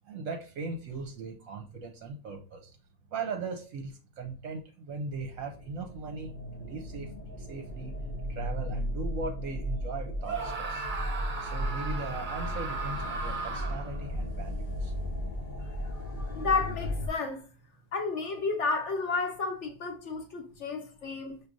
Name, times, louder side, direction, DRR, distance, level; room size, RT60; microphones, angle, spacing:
voice 1, 0.1-2.7 3.1-7.1 7.4-7.9 8.3-10.9 11.4-14.9, right 4 dB, 65° right, 1.0 m, -39 dB
sound 1, 5.3-17.1, equal, 85° left, 0.4 m, -35 dB
Screaming, 10.2-14.0, right 4 dB, 40° right, 0.8 m, -36 dB
voice 2, 15.6-17.4 17.9-21.4, left 4 dB, 55° left, 1.0 m, -32 dB
6.0 x 2.8 x 2.5 m
omnidirectional pair, 1.7 m